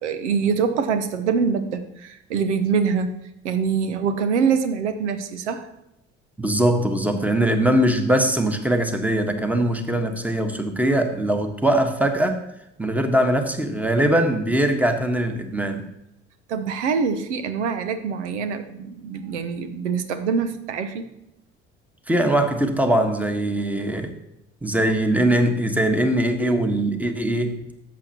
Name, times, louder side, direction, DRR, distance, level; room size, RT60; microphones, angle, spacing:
voice 1, 0.0-3.1 3.4-5.7 16.5-21.1, right 6 dB, 75° right, 10 dB, 1.0 m, -24 dB
voice 2, 6.4-12.4 12.8-15.8 22.1-24.1 24.6-27.6, right 1 dB, 5° right, 6 dB, 1.4 m, -21 dB
13.5 x 8.3 x 3.0 m, 0.86 s
figure-of-eight pair, 60°, 35 cm